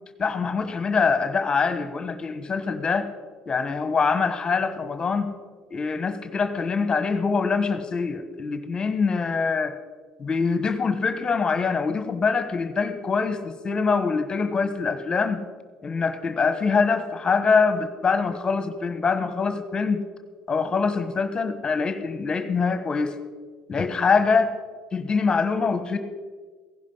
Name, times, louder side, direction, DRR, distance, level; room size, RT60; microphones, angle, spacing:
voice 1, 0.2-3.1 3.5-5.3 5.7-9.7 10.2-15.4 15.8-20.0 20.5-23.2 23.7-24.5 24.9-26.0, left 5 dB, 30° left, 10 dB, 1.3 m, -24 dB
16.0 x 11.0 x 5.6 m, 1.4 s
hypercardioid pair, 70°, 3 cm